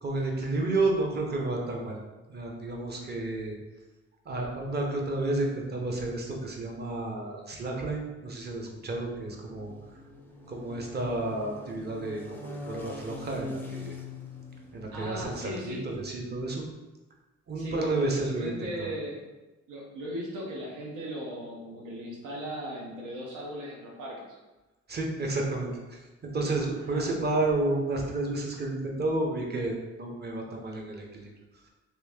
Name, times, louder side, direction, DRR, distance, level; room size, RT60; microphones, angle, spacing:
voice 1, 0.0-2.0 2.3-3.5 4.2-9.7 10.5-13.9 14.7-16.7 17.5-18.9 24.9-31.3, right 2 dB, 35° right, 0 dB, 0.8 m, -31 dB
sound 1, 8.2-15.8, left 3 dB, 5° left, 0.5 m, -44 dB
voice 2, 14.9-15.8 17.6-19.2 19.7-24.2 26.9-27.1, equal, 80° right, -3 dB, 0.9 m, -38 dB
3.0 x 2.7 x 3.5 m, 1.1 s
cardioid pair, 90°, 30 cm